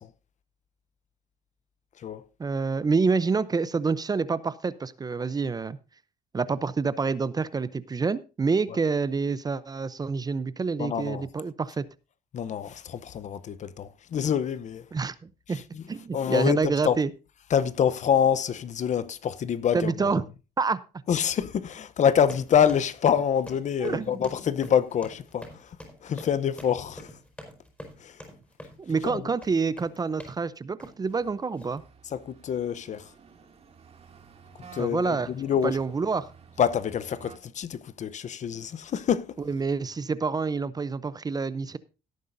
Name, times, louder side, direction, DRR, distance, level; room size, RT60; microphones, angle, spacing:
voice 1, 2.4-5.8 6.3-11.8 14.9-15.6 15.9-17.1 19.7-20.2 20.6-20.8 23.8-24.2 28.8-31.8 34.8-35.3 35.6-36.3 39.5-41.8, right 4 dB, 25° right, 0.6 m, -27 dB
voice 2, 10.8-11.3 12.3-14.8 15.5-15.8 16.1-17.0 17.5-20.1 21.1-25.8 26.0-27.1 28.0-28.2 29.0-29.2 32.1-33.1 34.7-35.8 36.6-39.4, left 8 dB, 45° left, 0.8 m, -26 dB
sound 1, 22.3-30.4 30.8-31.1 31.5-31.8, left 1 dB, 10° left, 4.7 m, -45 dB
sound 2, 31.1-37.4, right 6 dB, 40° right, 2.4 m, -52 dB
17.0 x 9.2 x 2.6 m
cardioid pair, 110°, 17 cm